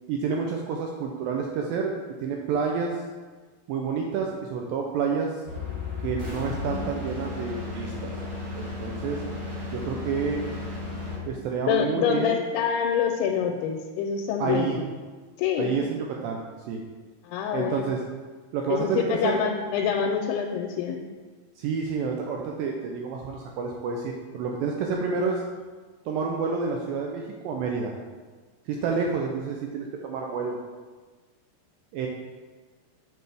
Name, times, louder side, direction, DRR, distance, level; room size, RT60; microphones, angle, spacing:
voice 1, 0.1-1.9 2.2-3.0 3.7-5.4 6.0-8.1 8.6-9.2 9.7-10.5 11.3-12.4 14.4-14.8 15.6-16.8 17.5-18.0 18.5-19.4 21.6-25.4 26.1-27.9 28.7-30.6 31.9-32.1, right 5 dB, 80° right, 1 dB, 2.1 m, -29 dB
sound 1, 5.5-11.3, left 3 dB, 40° right, 2.0 m, -34 dB
voice 2, 11.7-14.8 15.4-15.7 17.2-17.8 18.7-21.0, left 7 dB, 90° left, 3 dB, 2.6 m, -26 dB
6.6 x 6.6 x 3.3 m, 1.4 s
omnidirectional pair, 4.5 m